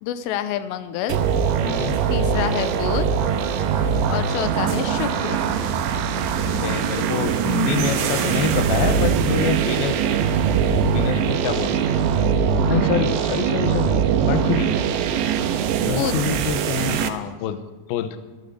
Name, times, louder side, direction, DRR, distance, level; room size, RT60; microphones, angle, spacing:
voice 1, 0.0-1.2 2.1-3.1 4.1-5.4 15.9-16.2, left 11 dB, 90° left, 11 dB, 2.9 m, -27 dB
sound 1, 1.1-17.1, right 7 dB, 85° right, 3.3 m, -22 dB
voice 2, 1.6-2.0 6.6-10.1 10.9-11.7 12.7-14.7 15.8-17.6 17.9-18.2, left 9 dB, 70° left, 10 dB, 2.5 m, -26 dB
sound 2, 1.7-9.0, right 3 dB, 55° right, 2.4 m, -33 dB
13.5 x 12.5 x 8.0 m, 1.2 s
omnidirectional pair, 5.0 m